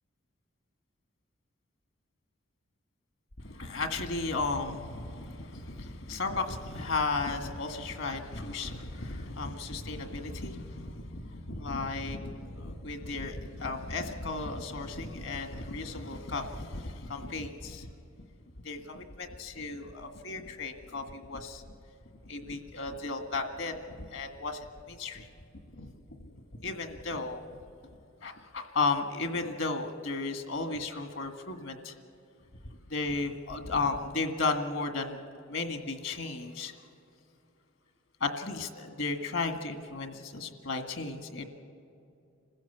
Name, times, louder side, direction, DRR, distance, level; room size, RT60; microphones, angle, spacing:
voice 1, 3.4-17.9 18.6-21.7 22.2-25.3 25.7-27.4 28.2-32.0 32.9-35.2 35.5-36.7 38.2-41.4, left 3 dB, 70° left, 6 dB, 1.8 m, -34 dB
26.5 x 15.5 x 7.1 m, 2.6 s
head